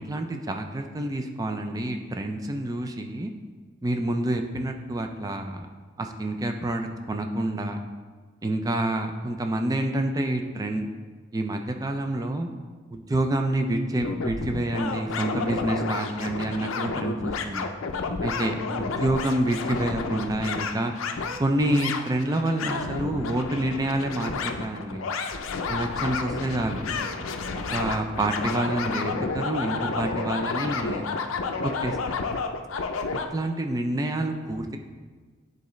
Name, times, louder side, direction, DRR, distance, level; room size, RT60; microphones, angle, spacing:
voice 1, 0.1-3.3 3.8-5.7 6.0-7.8 8.4-10.9 11.3-12.5 12.9-17.7 18.2-20.9 21.4-25.1 25.7-26.8 27.5-31.1 31.6-32.0 33.3-34.8, right 1 dB, 20° right, 5 dB, 0.4 m, -28 dB
sound 1, 14.0-33.3, left 4 dB, 90° left, 0.5 m, -31 dB
9.5 x 3.9 x 3.1 m, 1.5 s
head